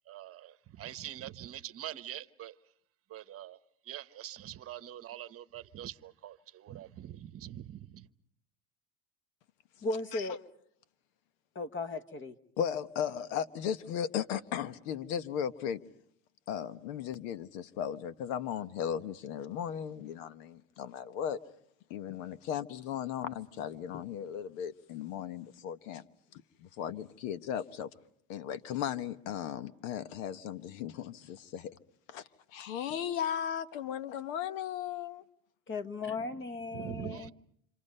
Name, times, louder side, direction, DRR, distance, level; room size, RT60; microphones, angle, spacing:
voice 1, 0.1-2.6 3.1-3.6 3.8-8.1 36.7-37.3, right 12 dB, 35° right, 1.0 m, -44 dB
voice 2, 9.8-10.4 11.5-12.3 35.7-37.3, left 3 dB, 30° left, 1.4 m, -36 dB
voice 3, 12.6-15.8 16.5-21.4 21.9-26.0 26.6-27.9 28.3-31.7 32.1-32.2 32.5-35.2, left 9 dB, 80° left, 1.2 m, -36 dB
28.5 x 26.5 x 5.5 m
supercardioid pair, 120°, 39 cm